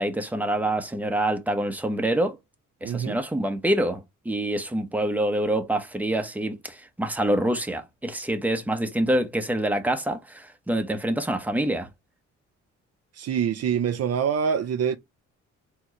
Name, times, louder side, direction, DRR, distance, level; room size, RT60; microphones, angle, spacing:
voice 1, 0.0-2.4 2.8-11.9, right 1 dB, 5° right, 1.0 m, -26 dB
voice 2, 2.8-3.2 13.1-15.0, right 7 dB, 55° right, 0.6 m, -25 dB
4.4 x 3.1 x 3.0 m
cardioid pair, 90°, 30 cm